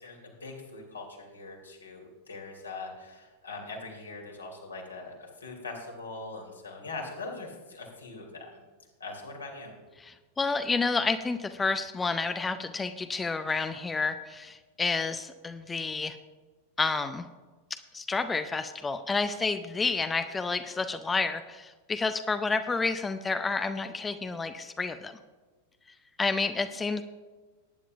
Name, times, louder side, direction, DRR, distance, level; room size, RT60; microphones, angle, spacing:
voice 1, 0.0-8.6 9.0-9.7, left 3 dB, 75° left, 0 dB, 2.7 m, -42 dB
voice 2, 10.0-16.2 16.8-17.3 17.9-25.2 26.2-27.0, left 4 dB, 15° left, 10 dB, 0.5 m, -30 dB
18.5 x 9.9 x 2.5 m, 1.3 s
figure-of-eight pair, 90°, 0 cm